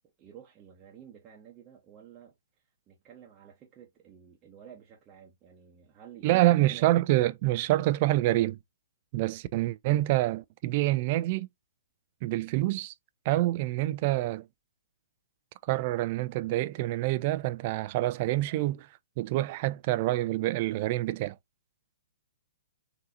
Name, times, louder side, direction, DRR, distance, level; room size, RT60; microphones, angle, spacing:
voice 1, 0.2-2.3 2.9-6.9, right 9 dB, 25° right, 0.8 m, -51 dB
voice 2, 6.2-8.6 9.1-11.5 12.2-12.9 13.3-14.5 15.7-18.9 19.2-21.4, right 16 dB, 40° right, 0.3 m, -26 dB
3.9 x 2.6 x 2.6 m
hypercardioid pair, 125°, 0 cm